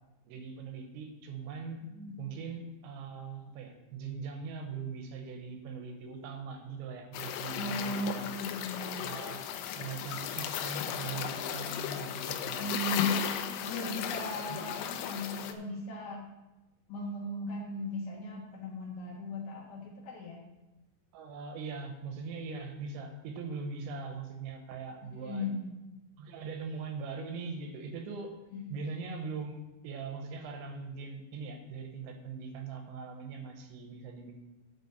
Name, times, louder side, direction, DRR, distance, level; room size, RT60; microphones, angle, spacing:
voice 1, 0.2-1.8 2.2-8.4 8.9-13.1 13.7-14.0 14.5-14.7 21.1-25.5 26.2-28.4 28.7-34.3, right 4 dB, 80° right, 4 dB, 3.2 m, -41 dB
sound 1, 7.1-15.5, left 10 dB, 80° left, 2.9 m, -36 dB
voice 2, 7.6-9.2 12.6-16.2 16.9-20.4 25.0-25.8 28.5-28.8, left 1 dB, 65° left, -2 dB, 2.9 m, -37 dB
9.4 x 5.0 x 6.8 m, 1.0 s
omnidirectional pair, 5.5 m